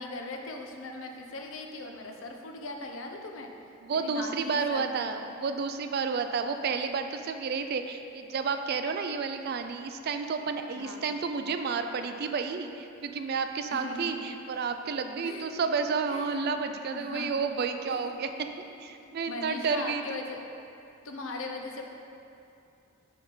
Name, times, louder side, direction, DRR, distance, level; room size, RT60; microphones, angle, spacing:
voice 1, 0.0-3.5 3.9-5.1 10.8-11.0 13.7-14.3 15.2-15.5 16.0-16.6 16.9-17.3 17.8-18.2 19.0-20.4 21.0-21.8, left 2 dB, 70° left, 3 dB, 0.6 m, -39 dB
voice 2, 3.8-18.5 18.8-20.2, right 5 dB, 50° right, 7 dB, 0.3 m, -31 dB
6.2 x 5.7 x 3.7 m, 2.6 s
head